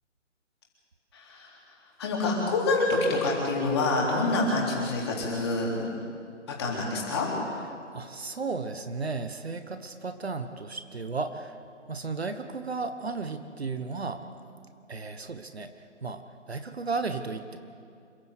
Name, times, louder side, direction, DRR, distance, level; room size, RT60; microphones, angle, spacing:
voice 1, 1.1-1.5 2.0-5.9 6.6-7.3, left 2 dB, 20° left, -3 dB, 3.6 m, -27 dB
voice 2, 7.9-11.6 11.9-14.2 14.9-17.6, right 4 dB, 55° right, 9 dB, 1.3 m, -34 dB
28.0 x 12.5 x 8.2 m, 2.4 s
figure-of-eight pair, 170°, 38 cm